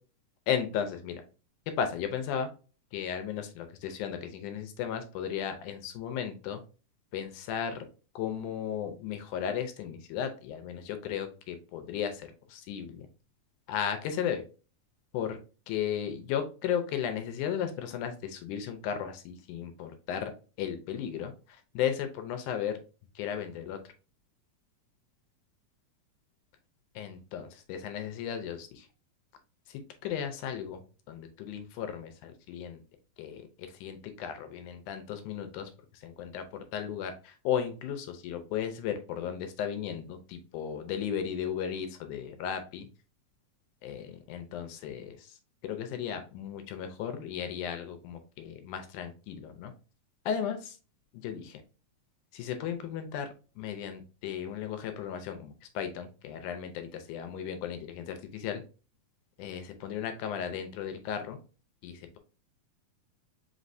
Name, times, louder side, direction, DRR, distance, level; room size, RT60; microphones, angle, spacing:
voice 1, 0.5-1.2 1.8-2.5 2.9-6.6 7.1-7.8 8.2-13.1 13.7-14.4 15.1-15.4 15.7-20.3 20.6-22.8 23.2-23.8 27.0-28.9 29.7-30.8 31.1-32.8 33.2-42.9 43.8-45.4 45.6-49.7 50.3-50.8 51.1-51.6 52.3-58.6 59.4-61.4 61.8-62.2, left 8 dB, 80° left, 8 dB, 1.9 m, -35 dB
5.2 x 3.1 x 2.6 m, 0.34 s
omnidirectional pair, 3.8 m